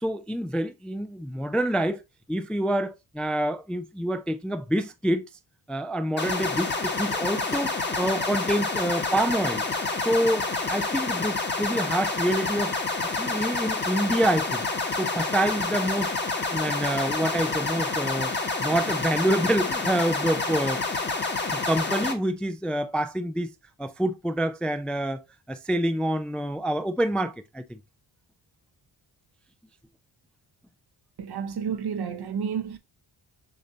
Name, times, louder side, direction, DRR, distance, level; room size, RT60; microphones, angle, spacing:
voice 1, 0.0-2.0 2.3-5.2 5.7-9.6 10.0-12.7 13.2-14.7 15.0-16.1 16.5-18.3 18.6-20.8 21.5-23.5 23.8-27.8, right 1 dB, ahead, 0.4 m, -27 dB
sound 1, 6.2-22.1, left 3 dB, 25° left, 1.2 m, -28 dB
voice 2, 31.2-32.8, right 7 dB, 55° right, 0.8 m, -30 dB
6.7 x 2.6 x 2.7 m
cardioid pair, 75°, 46 cm